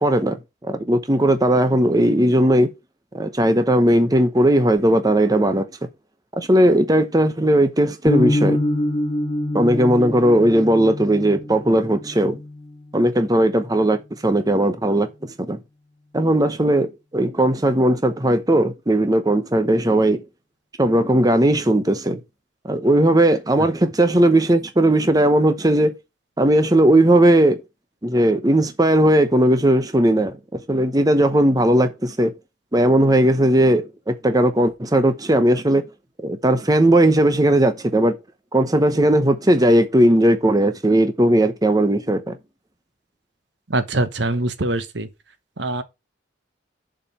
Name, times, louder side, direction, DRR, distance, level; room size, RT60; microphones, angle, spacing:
voice 1, 0.0-0.4 0.6-2.7 3.1-5.7 6.4-8.6 9.5-12.4 12.9-15.1 15.4-15.6 16.1-16.9 17.1-20.2 20.8-22.2 22.6-25.9 26.4-27.6 28.0-30.4 30.7-32.3 32.7-35.8 36.2-38.2 38.5-42.4, right 1 dB, 20° right, 0.9 m, -17 dB
sound 1, 8.1-14.1, left 1 dB, 15° left, 2.8 m, -26 dB
voice 2, 43.7-45.1 45.6-45.8, right 2 dB, 70° right, 1.1 m, -23 dB
7.1 x 5.0 x 7.1 m
head